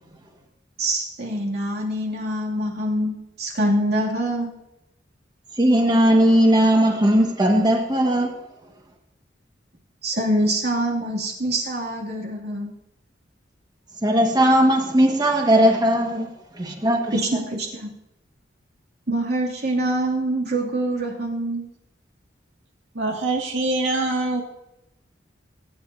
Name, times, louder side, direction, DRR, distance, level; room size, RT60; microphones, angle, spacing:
voice 1, 0.8-4.5 10.0-12.7 17.1-17.9 19.1-21.7, right 1 dB, 60° right, 2.7 m, -25 dB
voice 2, 5.6-8.3 14.0-16.3 16.6-17.4, equal, 20° right, 1.6 m, -18 dB
voice 3, 22.9-24.4, right 2 dB, 80° right, 2.0 m, -24 dB
20.5 x 9.6 x 2.8 m
head